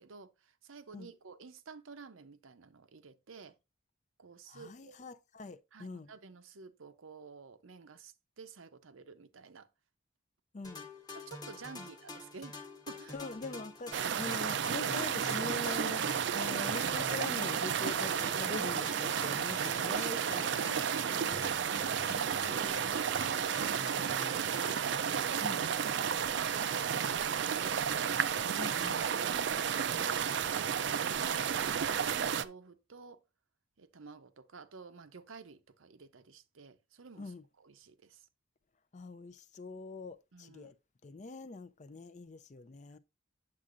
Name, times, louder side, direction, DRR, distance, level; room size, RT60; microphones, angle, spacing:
voice 1, 0.0-3.6 4.2-5.0 5.7-9.7 11.1-12.6 12.9-13.2 14.1-14.2 21.0-21.3 21.8-22.6 23.1-28.6 29.3-30.7 31.2-33.2 33.8-38.3 40.3-40.7 41.9-42.0, right 4 dB, 80° right, 0.7 m, -52 dB
voice 2, 4.5-6.1 10.5-10.9 11.8-11.9 13.1-21.5 22.0-22.8 25.4-25.6 28.5-29.0 37.2-37.4 38.9-40.7 41.0-43.0, left 3 dB, 35° left, 0.4 m, -44 dB
sound 1, 10.6-26.1, left 2 dB, 20° left, 1.2 m, -48 dB
sound 2, 13.9-32.4, right 7 dB, 60° right, 0.4 m, -32 dB
8.5 x 7.5 x 2.5 m
head